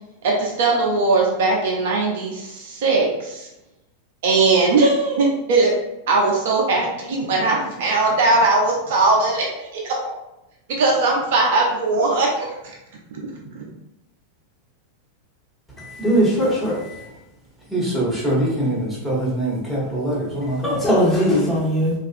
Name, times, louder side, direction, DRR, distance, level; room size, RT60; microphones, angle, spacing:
voice 1, 0.2-3.5 4.2-5.7 6.1-9.4 9.7-10.0 10.8-12.6 13.4-13.6, right 3 dB, 55° right, -1 dB, 0.4 m, -19 dB
voice 2, 15.8-17.1 20.6-21.9, equal, 15° left, -7 dB, 1.2 m, -20 dB
voice 3, 17.7-20.8, right 1 dB, ahead, -6 dB, 1.0 m, -23 dB
2.4 x 2.3 x 2.6 m, 0.92 s
figure-of-eight pair, 90°, 0 cm